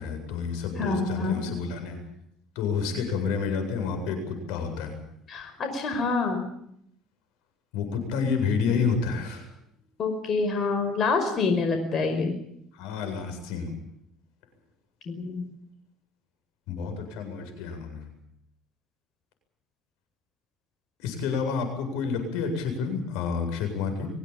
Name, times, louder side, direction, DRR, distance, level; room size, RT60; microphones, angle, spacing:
voice 1, 0.0-2.0 2.5-5.0 7.7-9.5 12.7-13.7 16.7-18.1 21.0-24.1, left 5 dB, 80° left, 6 dB, 7.8 m, -29 dB
voice 2, 0.8-1.4 5.3-6.4 10.0-12.3 15.0-15.4, left 4 dB, 40° left, 6 dB, 5.3 m, -26 dB
24.0 x 17.0 x 9.0 m, 0.73 s
cardioid pair, 120°, 0 cm